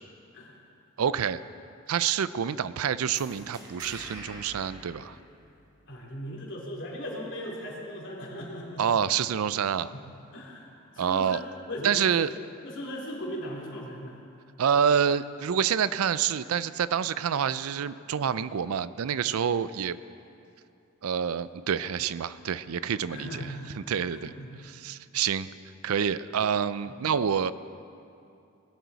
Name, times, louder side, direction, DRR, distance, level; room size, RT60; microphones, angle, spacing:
voice 1, 1.0-1.4 1.9-5.2 8.8-9.9 11.0-11.4 11.8-12.3 14.6-20.0 21.0-23.5 23.9-24.3 24.6-25.5 25.8-27.5, right 7 dB, 80° right, 16 dB, 0.4 m, -27 dB
sound 1, 3.1-5.9, equal, 20° right, 2.2 m, -46 dB
voice 2, 5.9-9.0 9.9-10.0 10.3-10.7 10.9-12.3 12.6-14.2 23.1-23.7 24.1-24.5, equal, 60° left, -2 dB, 2.8 m, -38 dB
20.0 x 12.5 x 4.1 m, 2.6 s
head